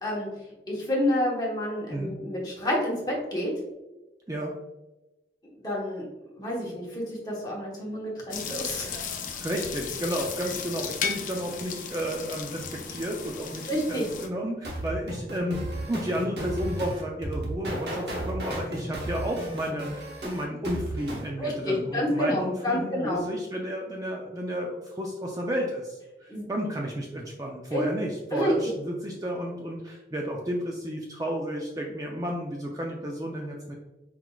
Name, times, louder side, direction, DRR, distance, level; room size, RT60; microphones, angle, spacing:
voice 1, 0.7-3.5 5.6-6.0 6.4-9.1 13.7-14.1 21.4-23.2 26.3-26.5 27.7-27.8 28.3-28.5, left 1 dB, 20° left, -4 dB, 1.1 m, -29 dB
sound 1, 8.3-14.3, left 6 dB, 50° left, 0.5 m, -35 dB
voice 2, 9.4-33.8, equal, 20° right, 0 dB, 0.4 m, -32 dB
sound 2, 14.6-21.3, right 1 dB, 70° right, 1.0 m, -34 dB
4.5 x 3.9 x 2.3 m, 1.0 s
head